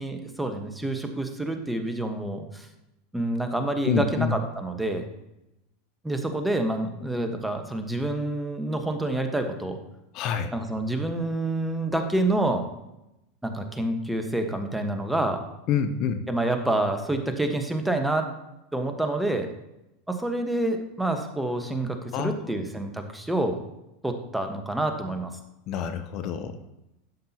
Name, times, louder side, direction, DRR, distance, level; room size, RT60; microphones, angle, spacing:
voice 1, 0.0-2.7 3.1-5.0 6.0-9.8 10.5-12.6 13.4-15.4 16.3-18.3 18.7-19.5 20.1-23.6 24.0-25.3, right 1 dB, 5° right, 6 dB, 1.2 m, -27 dB
voice 2, 3.8-4.4 10.1-10.5 15.7-16.2 22.1-22.6 25.7-26.6, left 7 dB, 50° left, 10 dB, 0.7 m, -27 dB
11.5 x 7.6 x 2.9 m, 0.91 s
hypercardioid pair, 90°, 0 cm